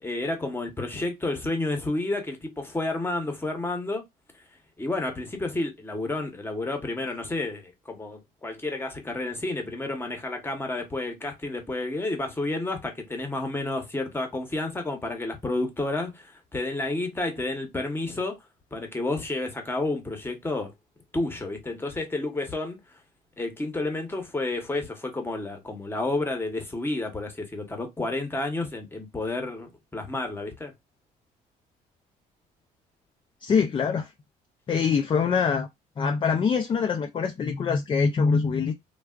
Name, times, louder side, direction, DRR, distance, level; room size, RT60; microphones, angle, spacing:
voice 1, 0.0-4.0 4.8-18.4 18.7-20.7 21.1-23.0 23.4-30.7, left 2 dB, 15° left, 0.9 m, -30 dB
voice 2, 33.4-34.1 34.7-35.7 36.0-38.7, left 5 dB, 30° left, 0.4 m, -24 dB
3.3 x 2.3 x 2.3 m
cardioid pair, 110°, 17 cm